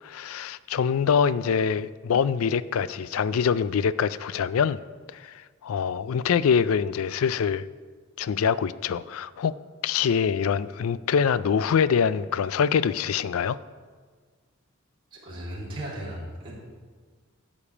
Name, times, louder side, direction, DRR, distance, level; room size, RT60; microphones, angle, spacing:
voice 1, 0.0-4.8 5.1-7.7 8.2-9.6 9.8-13.6, left 7 dB, 80° left, 17 dB, 0.4 m, -24 dB
voice 2, 15.1-16.5, right 1 dB, 25° right, -7 dB, 3.0 m, -36 dB
11.5 x 5.2 x 8.5 m, 1.5 s
head